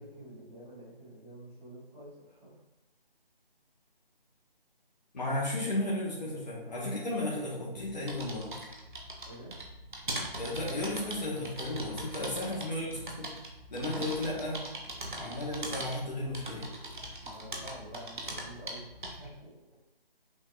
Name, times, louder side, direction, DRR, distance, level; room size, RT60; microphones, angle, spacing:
voice 1, 0.0-2.6 6.2-6.4 9.2-9.6 12.2-12.7 17.2-19.5, equal, 5° left, -16 dB, 0.8 m, -48 dB
voice 2, 5.1-8.6 10.3-13.3 13.7-14.7 15.2-16.7, left 1 dB, 45° left, -5 dB, 1.0 m, -34 dB
sound 1, 7.8-19.4, right 1 dB, 55° right, 1.1 m, -41 dB
6.2 x 3.4 x 2.4 m, 1.0 s
figure-of-eight pair, 155°, 30 cm